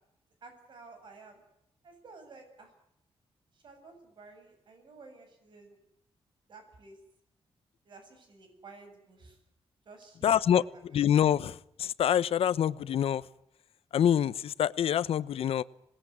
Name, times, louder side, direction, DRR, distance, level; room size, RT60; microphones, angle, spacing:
voice 1, 0.4-1.4 1.8-2.7 3.5-5.8 6.5-7.0 7.9-9.4 9.9-11.0, right 3 dB, 50° right, 6 dB, 7.2 m, -52 dB
voice 2, 10.2-10.6 10.9-13.2 13.9-15.6, left 9 dB, 75° left, 16 dB, 0.9 m, -26 dB
26.5 x 20.5 x 9.8 m, 0.81 s
wide cardioid pair, 155°, 10 cm